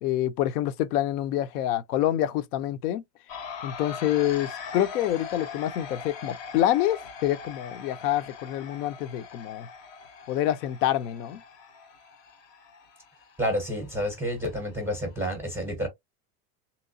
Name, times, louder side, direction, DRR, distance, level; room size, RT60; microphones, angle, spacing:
voice 1, 0.0-3.0 3.6-9.7 10.3-11.4, left 12 dB, 80° left, 0.6 m, -27 dB
sound 1, 3.3-15.2, left 6 dB, 40° left, 0.6 m, -42 dB
voice 2, 13.4-15.9, equal, 5° right, 0.5 m, -29 dB
3.1 x 2.9 x 2.6 m
supercardioid pair, 175°, 45 cm